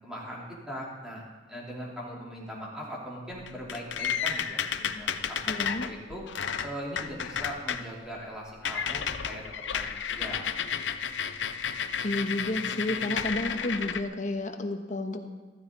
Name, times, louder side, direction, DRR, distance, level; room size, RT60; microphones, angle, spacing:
voice 1, 0.0-1.2 1.5-5.4 5.6-6.2 6.6-9.4 9.7-9.9 10.2-10.5 10.8-10.9, equal, 5° right, -5 dB, 3.5 m, -40 dB
sound 1, 3.3-7.8 8.2-8.3 8.6-14.0, left 7 dB, 85° left, 0.6 m, -32 dB
voice 2, 5.5-5.9 12.0-15.3, left 1 dB, 45° left, 5 dB, 1.2 m, -31 dB
15.0 x 14.5 x 4.0 m, 1.3 s
head